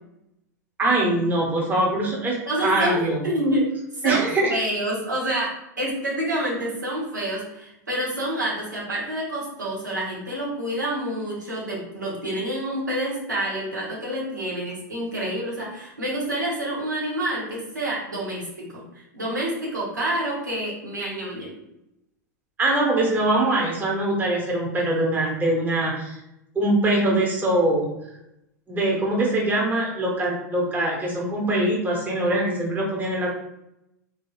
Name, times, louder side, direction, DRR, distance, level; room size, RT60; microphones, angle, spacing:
voice 1, 0.8-3.2 4.0-4.5 22.6-26.2 26.5-27.9 28.7-33.3, right 1 dB, 20° right, -3 dB, 0.9 m, -23 dB
voice 2, 2.5-3.7 3.9-21.6, right 1 dB, 85° right, -6 dB, 1.1 m, -28 dB
3.4 x 2.7 x 2.3 m, 0.86 s
figure-of-eight pair, 90°, 9 cm